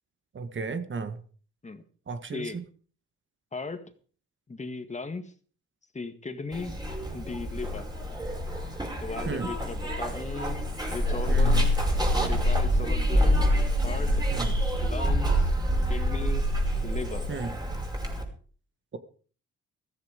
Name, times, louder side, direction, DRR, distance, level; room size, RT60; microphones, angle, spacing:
voice 1, 0.3-1.2 2.1-2.6 9.3-9.5 11.3-11.7 14.3-14.6 17.3-17.5, right 4 dB, 40° right, 11 dB, 1.6 m, -33 dB
voice 2, 3.5-3.8 4.5-5.3 5.9-6.7 7.1-7.9 9.0-10.6 10.9-11.8 12.1-13.4 13.8-14.1 14.8-15.5 15.9-16.4 16.8-17.3, left 3 dB, 25° left, 9 dB, 1.9 m, -37 dB
Zipper (clothing), 6.5-18.2, equal, 15° right, 5.2 m, -26 dB
14.5 x 14.0 x 5.1 m, 0.42 s
cardioid pair, 90°, 30 cm